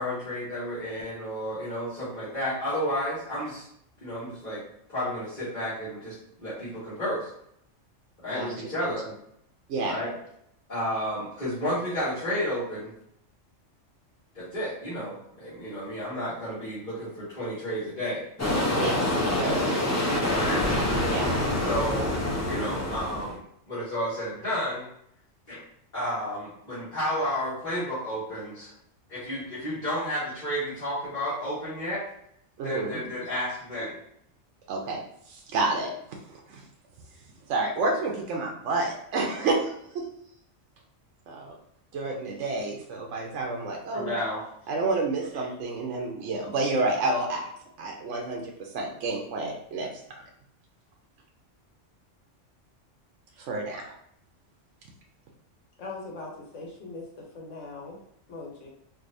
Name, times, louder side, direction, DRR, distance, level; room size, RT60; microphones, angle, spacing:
voice 1, 0.0-3.6 4.0-4.6 4.9-7.3 8.2-9.1 9.8-10.1 10.7-12.9 14.3-18.2 20.3-20.6 21.6-22.1 22.4-23.4 23.7-24.9 25.5-25.6 25.9-28.7 29.1-32.0 32.6-34.0 43.9-44.4, equal, 40° left, -14 dB, 1.7 m, -31 dB
sound 1, 18.4-23.3, left 1 dB, 20° left, 0.4 m, -26 dB
voice 2, 18.8-19.9 20.1-20.6 21.1-21.4 32.6-33.0 34.7-35.0 35.3-35.9 36.3-36.6 37.5-40.0 41.3-41.6 41.9-44.2 44.7-47.5 47.8-49.9 50.2-50.3 53.4-53.9, right 3 dB, 75° right, 1 dB, 1.0 m, -30 dB
voice 3, 55.8-57.0 57.3-58.0 58.3-58.7, left 3 dB, 75° left, -1 dB, 1.3 m, -40 dB
4.6 x 2.6 x 2.5 m, 0.72 s
omnidirectional pair, 1.3 m